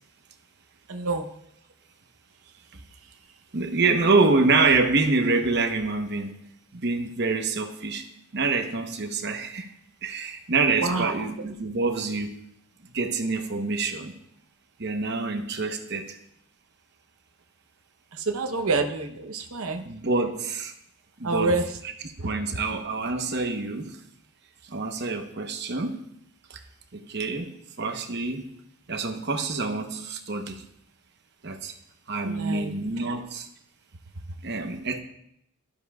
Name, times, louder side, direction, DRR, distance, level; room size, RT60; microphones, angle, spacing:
voice 1, 0.9-1.3 10.8-11.1 18.1-19.9 21.2-21.8 22.2-22.3 32.2-32.7, right 3 dB, 75° right, 6 dB, 0.8 m, -27 dB
voice 2, 3.5-6.3 6.7-8.0 8.3-9.7 10.0-12.4 12.9-14.1 14.8-16.2 19.9-20.7 21.2-21.5 22.2-24.0 24.7-26.0 26.5-26.6 26.9-28.4 28.9-30.6 31.4-31.7 32.1-33.5 34.4-35.0, right 3 dB, 50° right, 5 dB, 1.0 m, -26 dB
12.5 x 12.5 x 2.4 m, 0.74 s
head